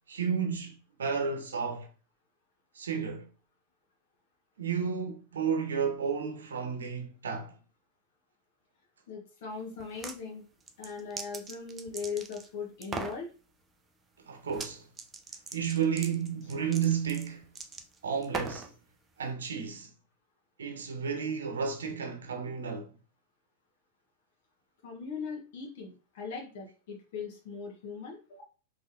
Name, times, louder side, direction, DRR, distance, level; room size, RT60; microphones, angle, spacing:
voice 1, 0.1-1.9 2.7-3.3 4.6-7.5 14.3-14.8 15.5-17.4 18.0-18.7 19.2-19.9 20.6-22.9, right 6 dB, 65° right, 0.7 m, -32 dB
voice 2, 9.1-10.4 10.8-13.3 24.8-28.4, left 5 dB, 55° left, 1.2 m, -39 dB
sound 1, 9.8-10.2 10.6-12.5 12.8-13.2 14.5-14.7 15.0-18.7, right 3 dB, 15° right, 0.6 m, -40 dB
4.9 x 3.0 x 2.8 m
figure-of-eight pair, 90°, 0 cm